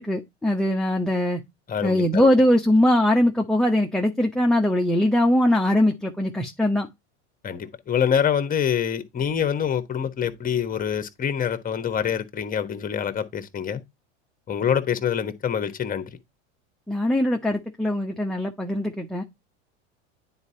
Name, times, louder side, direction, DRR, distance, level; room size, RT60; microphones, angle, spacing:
voice 1, 0.0-1.4 1.8-6.9 16.9-19.2, left 1 dB, ahead, 0.8 m, -21 dB
voice 2, 1.7-2.3 7.4-13.8 14.5-16.2, left 8 dB, 25° left, 1.2 m, -25 dB
9.6 x 4.3 x 2.7 m
hypercardioid pair, 95°, 34 cm